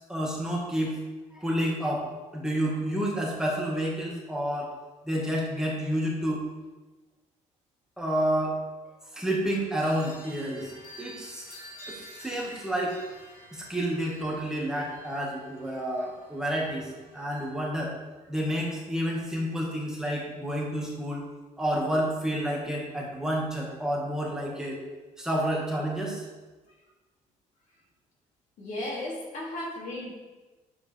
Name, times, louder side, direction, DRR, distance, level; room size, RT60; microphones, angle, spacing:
voice 1, 0.1-1.0 1.3-2.0 2.3-4.7 5.0-6.4 8.0-8.6 9.1-10.7 11.0-11.5 11.9-13.0 13.5-17.9 18.3-21.2 21.6-24.8 25.2-26.2, equal, 5° right, -4 dB, 1.6 m, -29 dB
sound 1, 9.8-17.5, equal, 90° left, 2.3 m, -49 dB
voice 2, 28.6-30.1, left 1 dB, 65° left, -3 dB, 2.4 m, -35 dB
9.8 x 7.4 x 3.3 m, 1.2 s
cardioid pair, 140°, 13 cm